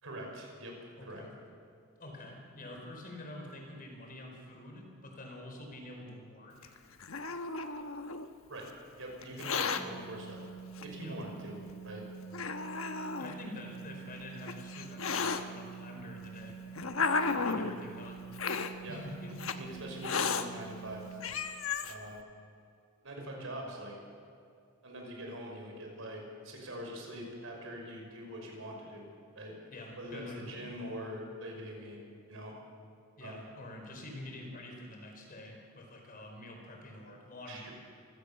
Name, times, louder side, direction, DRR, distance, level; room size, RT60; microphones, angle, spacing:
voice 1, 0.0-1.2 8.5-10.5 10.8-11.6 11.8-12.1 18.8-19.0 19.5-21.2 21.9-22.2 23.0-24.0 24.8-29.1 29.3-29.6 30.0-32.0 32.3-32.6 33.2-33.4 37.5-37.7, right 1 dB, 65° right, 1 dB, 5.7 m, -43 dB
voice 2, 1.0-1.3 2.0-6.7 11.0-11.2 13.2-16.6 17.4-18.2 18.9-19.7 29.7-31.0 33.2-37.7, left 1 dB, 40° left, 1 dB, 4.7 m, -47 dB
Hiss, 6.6-8.3 9.2-9.8 10.8-10.9 11.7-11.8 12.3-13.3 14.2-15.4 16.2-17.8 18.3-18.7 19.4-19.6 20.0-20.4 20.9-21.0 21.2-21.9, left 5 dB, 70° left, 1.2 m, -33 dB
sound 1, 9.8-21.2, right 6 dB, 5° right, 3.2 m, -47 dB
26.5 x 16.5 x 7.0 m, 2.5 s
head